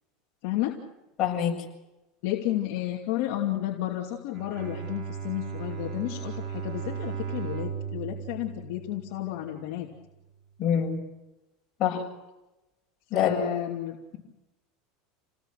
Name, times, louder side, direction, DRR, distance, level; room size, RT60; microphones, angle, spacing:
voice 1, 0.4-0.7 2.2-9.9 13.1-14.0, left 14 dB, 65° left, 0 dB, 2.7 m, -31 dB
voice 2, 1.2-1.5 10.6-11.0 11.8-12.0 13.1-13.4, left 9 dB, 40° left, 1 dB, 7.7 m, -24 dB
Bowed string instrument, 4.2-9.6, right 7 dB, 35° right, 4.7 m, -36 dB
30.0 x 19.0 x 6.7 m, 1.0 s
supercardioid pair, 135°, 0 cm